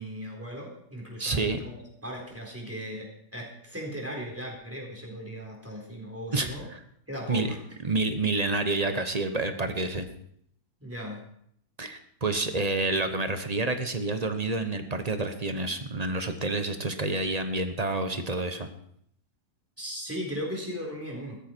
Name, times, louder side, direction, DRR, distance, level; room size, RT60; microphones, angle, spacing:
voice 1, 0.0-6.7 7.1-7.6 10.8-11.2 19.8-21.4, equal, 10° right, -1 dB, 4.0 m, -37 dB
voice 2, 1.2-1.6 6.3-6.5 7.3-7.6 7.8-10.1 11.8-18.7, right 2 dB, 30° right, 8 dB, 1.0 m, -28 dB
16.0 x 13.0 x 4.5 m, 0.68 s
omnidirectional pair, 1.6 m